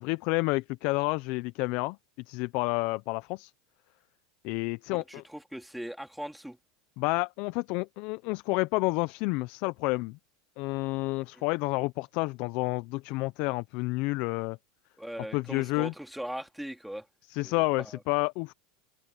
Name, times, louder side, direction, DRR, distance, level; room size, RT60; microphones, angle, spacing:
voice 1, 0.0-2.0 2.3-3.5 4.4-5.2 7.0-10.2 10.6-14.6 15.3-15.9 17.3-18.5, left 24 dB, 55° left, 0.6 m, -30 dB
voice 2, 4.9-6.6 11.3-11.4 15.0-17.1 17.4-18.0, equal, ahead, 2.8 m, -40 dB
open air
supercardioid pair, 120°, 3 cm